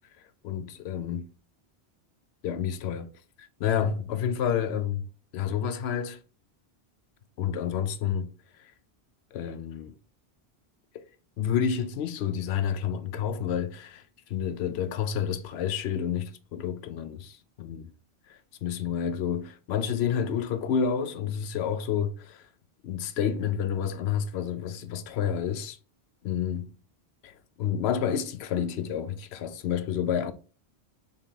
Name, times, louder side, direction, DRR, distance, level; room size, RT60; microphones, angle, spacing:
voice 1, 0.4-1.3 2.4-3.1 3.4-5.1 5.3-6.2 7.4-8.3 8.6-8.7 9.3-9.9 11.4-14.0 14.3-17.9 18.3-22.5 22.8-25.8 26.2-26.6 27.2-30.3, left 8 dB, 80° left, 0.8 m, -29 dB
5.3 x 3.6 x 2.7 m
omnidirectional pair, 1.1 m